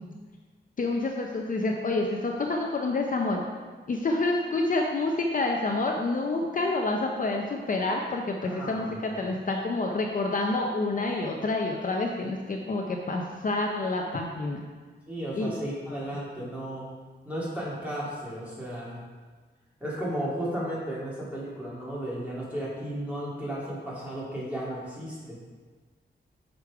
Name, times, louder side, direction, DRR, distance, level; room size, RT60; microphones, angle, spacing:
voice 1, 0.8-3.4 3.9-14.6 15.3-15.6, left 2 dB, 45° left, 1 dB, 0.6 m, -28 dB
voice 2, 8.4-9.0 15.1-16.8 17.2-19.0 19.8-25.4, equal, 10° right, -7 dB, 2.2 m, -34 dB
6.2 x 5.1 x 4.7 m, 1.4 s
wide cardioid pair, 140°, 19 cm